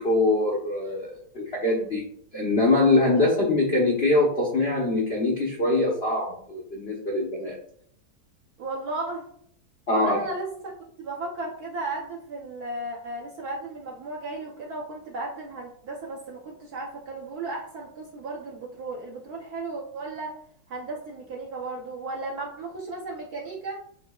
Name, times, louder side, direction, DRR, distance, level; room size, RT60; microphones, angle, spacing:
voice 1, 0.0-2.0 2.3-7.5 9.9-10.2, left 2 dB, 65° left, -2 dB, 0.6 m, -23 dB
voice 2, 8.6-9.3 9.9-20.3 20.7-23.8, right 2 dB, 65° right, -2 dB, 1.0 m, -35 dB
8.2 x 2.8 x 2.3 m, 0.64 s
omnidirectional pair, 2.4 m